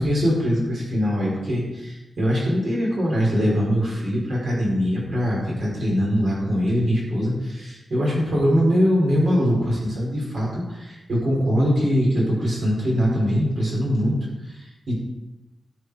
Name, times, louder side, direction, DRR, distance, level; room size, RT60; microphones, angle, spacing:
voice 1, 0.0-14.2 14.5-15.0, equal, 60° right, -4 dB, 5.2 m, -22 dB
13.5 x 8.1 x 5.1 m, 1.0 s
wide cardioid pair, 160°, 0 cm